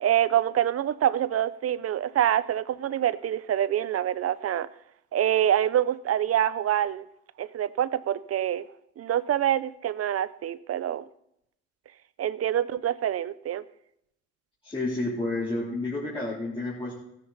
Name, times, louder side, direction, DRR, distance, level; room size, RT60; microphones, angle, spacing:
voice 1, 0.0-4.7 5.1-7.0 7.4-8.6 9.0-11.1 12.2-13.6, right 11 dB, 50° right, 17 dB, 0.6 m, -26 dB
voice 2, 14.6-16.9, left 2 dB, 15° left, -7 dB, 3.4 m, -30 dB
15.5 x 9.9 x 4.0 m, 0.77 s
cardioid pair, 90°, 30 cm